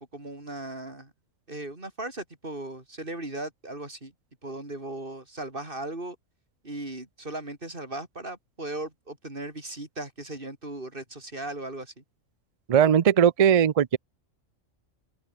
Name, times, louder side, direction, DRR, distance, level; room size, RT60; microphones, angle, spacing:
voice 1, 0.1-1.1 1.5-4.1 4.4-6.2 6.6-12.0, right 2 dB, 40° right, 4.6 m, -37 dB
voice 2, 12.7-14.0, right 8 dB, 65° right, 0.3 m, -19 dB
open air
omnidirectional pair, 1.4 m